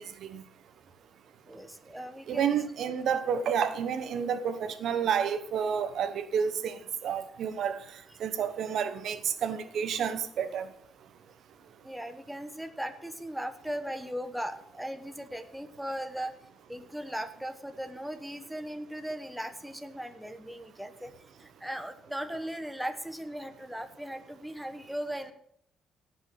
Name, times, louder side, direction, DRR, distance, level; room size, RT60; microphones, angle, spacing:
voice 1, 1.5-2.5 2.8-2.9 11.8-16.3 16.7-21.1 21.4-25.3, equal, 5° right, 8 dB, 1.1 m, -38 dB
voice 2, 2.3-7.8 8.2-10.7, right 7 dB, 65° right, 11 dB, 1.1 m, -30 dB
17.5 x 6.1 x 5.9 m, 0.68 s
cardioid pair, 125°, 0 cm